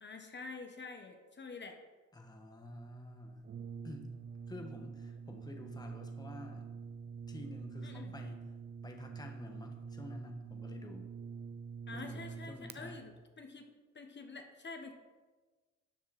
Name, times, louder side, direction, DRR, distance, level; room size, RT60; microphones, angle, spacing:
voice 1, 0.0-1.8 7.8-8.1 11.9-13.7 13.9-14.9, left 4 dB, 35° left, 4 dB, 1.4 m, -47 dB
voice 2, 2.1-3.5 3.8-4.2 4.5-6.7 7.3-8.5 8.8-11.1 11.9-13.0, left 1 dB, 15° left, 3 dB, 1.3 m, -48 dB
Brass instrument, 3.4-12.8, right 6 dB, 35° right, 0.6 m, -46 dB
12.5 x 7.3 x 4.3 m, 1.3 s
cardioid pair, 90°, 30 cm